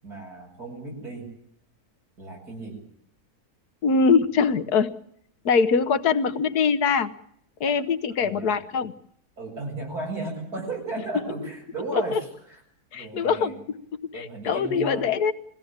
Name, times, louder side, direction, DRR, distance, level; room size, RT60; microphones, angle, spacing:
voice 1, 0.0-1.3 2.2-2.8 8.1-8.5 9.4-12.2 12.5-12.6 12.9-13.6 14.1-15.1, right 2 dB, 80° right, 0 dB, 8.2 m, -34 dB
voice 2, 3.8-4.9 5.4-7.1 7.6-8.9 11.9-12.2 12.9-13.8 14.1-15.3, left 5 dB, 85° left, 11 dB, 1.6 m, -23 dB
22.5 x 16.5 x 8.8 m, 0.69 s
omnidirectional pair, 1.6 m